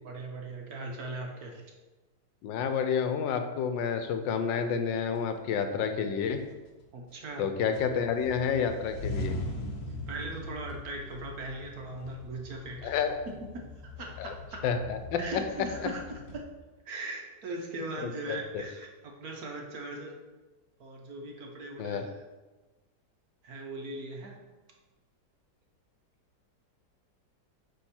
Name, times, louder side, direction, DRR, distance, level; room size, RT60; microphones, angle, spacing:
voice 1, 0.0-1.6 6.9-7.5 9.9-14.6 15.2-16.5 16.8-20.1 20.8-22.2 23.4-24.4, right 2 dB, 60° right, 1 dB, 1.3 m, -40 dB
voice 2, 2.4-6.4 7.4-9.4 12.8-13.3 14.2-14.3 14.6-15.2 15.8-15.9 18.0-18.4 21.8-22.0, left 7 dB, 85° left, 7 dB, 1.4 m, -29 dB
sound 1, 5.2-5.9 6.3-7.4 7.7-16.4, left 1 dB, 60° left, 1.4 m, -41 dB
9.3 x 3.5 x 4.3 m, 1.2 s
omnidirectional pair, 2.0 m